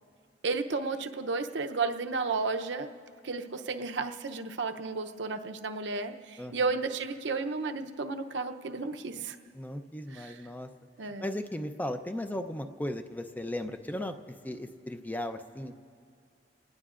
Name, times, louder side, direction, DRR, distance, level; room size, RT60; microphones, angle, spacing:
voice 1, 0.4-2.9 3.2-9.4 10.1-10.4 11.0-11.3, right 4 dB, 80° right, 6 dB, 0.7 m, -33 dB
voice 2, 9.5-10.7 11.0-14.2 14.4-15.7, left 1 dB, 10° left, 7 dB, 0.6 m, -36 dB
28.0 x 19.0 x 2.5 m, 2.4 s
head